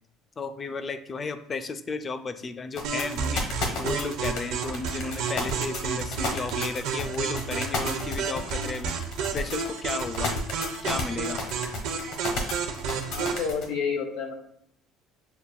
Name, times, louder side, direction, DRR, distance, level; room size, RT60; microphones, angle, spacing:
voice 1, 0.4-3.4 3.8-9.0 9.3-10.3 10.8-11.4, left 4 dB, 25° left, 10 dB, 0.3 m, -33 dB
sound 1, 2.7-13.6, left 3 dB, 60° left, 1.2 m, -32 dB
sound 2, 2.8-13.5, right 5 dB, 65° right, 0.6 m, -31 dB
voice 2, 13.1-14.3, left 6 dB, 85° left, 1 dB, 0.8 m, -30 dB
6.9 x 2.4 x 2.2 m, 0.71 s
cardioid pair, 160°, 0 cm